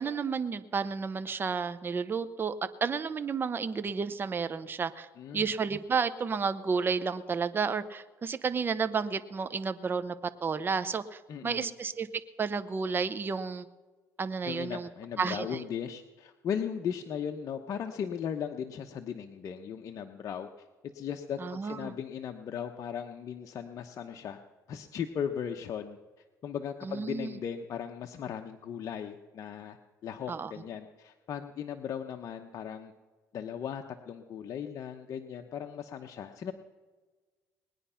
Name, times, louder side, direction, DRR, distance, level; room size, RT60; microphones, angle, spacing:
voice 1, 0.0-2.5 2.8-5.1 5.3-10.1 10.4-12.1 12.4-13.7 14.2-14.9 15.2-15.6 21.4-21.9 26.8-27.3 30.3-30.5, right 5 dB, 30° right, 12 dB, 0.8 m, -31 dB
voice 2, 5.2-5.5 11.3-11.7 14.4-20.7 20.9-24.4 24.7-26.0 26.4-29.8 30.0-32.9 33.3-36.5, left 8 dB, 55° left, 4 dB, 0.9 m, -37 dB
20.0 x 9.9 x 5.7 m, 1.3 s
cardioid pair, 95°, 7 cm